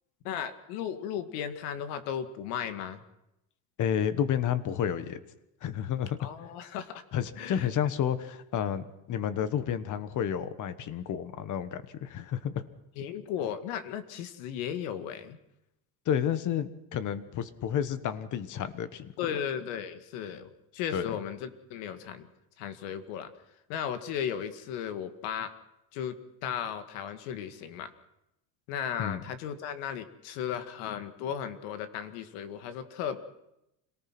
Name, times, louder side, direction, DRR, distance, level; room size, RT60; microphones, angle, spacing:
voice 1, 0.2-3.0 6.2-7.0 7.4-7.7 13.0-15.4 19.2-22.3 22.6-23.3 23.7-25.5 25.9-26.2 26.4-27.9 28.7-33.2, left 9 dB, 75° left, 10 dB, 2.2 m, -35 dB
voice 2, 3.8-5.2 5.6-6.2 7.1-12.6 16.0-19.1 20.9-21.1 29.0-29.2, left 9 dB, 35° left, 13 dB, 1.4 m, -30 dB
26.5 x 18.5 x 6.1 m, 0.87 s
cardioid pair, 145°, 49 cm